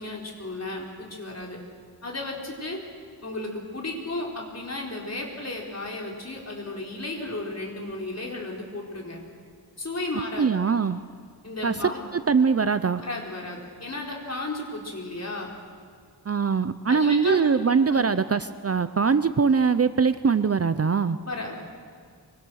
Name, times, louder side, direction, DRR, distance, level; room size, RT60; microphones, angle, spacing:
voice 1, 0.0-1.6 2.0-2.8 3.2-9.2 9.8-10.5 11.4-12.1 12.9-15.5 16.9-17.4 17.9-18.1 21.2-21.6, left 2 dB, 40° left, -1 dB, 4.4 m, -34 dB
voice 2, 10.4-11.0 11.6-11.7 12.1-13.0 16.3-21.2, right 5 dB, 40° right, 12 dB, 0.6 m, -22 dB
24.5 x 24.0 x 6.4 m, 2.1 s
wide cardioid pair, 115°, 40 cm